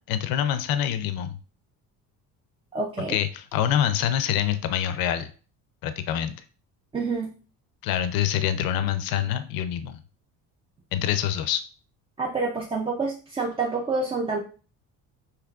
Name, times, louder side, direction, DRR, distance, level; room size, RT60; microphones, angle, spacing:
voice 1, 0.1-1.4 3.1-5.3 5.8-6.3 7.8-10.0 10.9-11.6, left 10 dB, 75° left, 11 dB, 0.6 m, -25 dB
voice 2, 2.7-3.2 6.9-7.3 12.2-14.4, right 3 dB, 15° right, -1 dB, 0.4 m, -27 dB
5.9 x 3.3 x 2.3 m, 0.38 s
cardioid pair, 160°, 36 cm